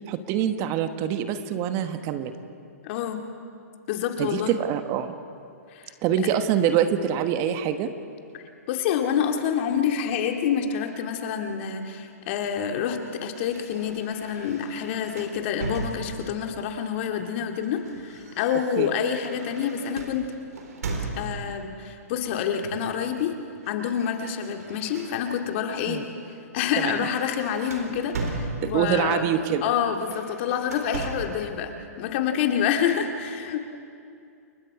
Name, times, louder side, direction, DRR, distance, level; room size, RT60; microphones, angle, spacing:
voice 1, 0.0-2.3 4.2-5.1 6.0-7.9 18.8-18.9 25.9-26.0 26.8-26.9 28.6-29.6, right 9 dB, 35° right, 9 dB, 1.2 m, -25 dB
voice 2, 2.8-3.2 3.9-4.5 5.7-5.9 8.7-20.3 21.2-23.3 23.7-26.0 26.5-29.3 29.6-33.6, left 8 dB, 45° left, 4 dB, 2.1 m, -27 dB
sound 1, 13.4-16.5 17.4-21.6 22.6-23.0 23.3-25.6 26.1-26.3 26.6-29.0 29.9-31.5, right 3 dB, 75° right, 4.1 m, -37 dB
29.5 x 22.0 x 4.8 m, 2.4 s
hypercardioid pair, 130°, 9 cm